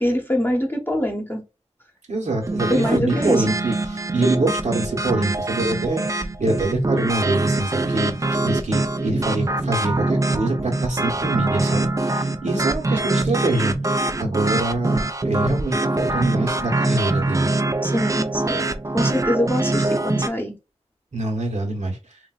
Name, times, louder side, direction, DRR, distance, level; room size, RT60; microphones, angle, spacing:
voice 1, 0.0-1.4 2.7-3.4 17.8-20.5, equal, 20° left, 0.9 m, -24 dB
voice 2, 2.1-17.5 21.1-22.0, right 2 dB, 85° right, 1.2 m, -25 dB
sound 1, 2.4-20.3, right 2 dB, 25° right, 0.4 m, -23 dB
3.3 x 2.5 x 2.4 m
wide cardioid pair, 60°, 12 cm